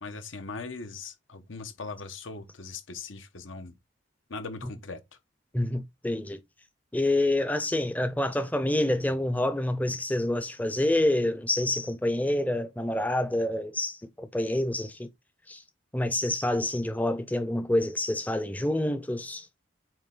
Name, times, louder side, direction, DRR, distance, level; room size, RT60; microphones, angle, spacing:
voice 1, 0.0-3.8 4.3-5.0, left 4 dB, 75° left, 1.2 m, -40 dB
voice 2, 5.5-6.4 6.9-15.1 15.5-15.6 15.9-19.5, left 1 dB, 10° left, 0.6 m, -27 dB
8.8 x 3.1 x 3.8 m
head